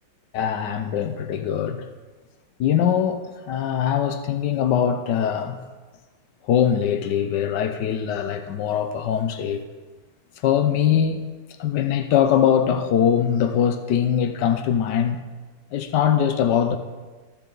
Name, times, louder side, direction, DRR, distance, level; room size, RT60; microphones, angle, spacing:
voice 1, 0.3-1.8 2.6-5.6 6.5-9.6 10.4-11.3 11.6-15.2 15.7-16.8, left 9 dB, 85° left, 1.3 m, -22 dB
14.5 x 6.8 x 3.9 m
omnidirectional pair, 1.8 m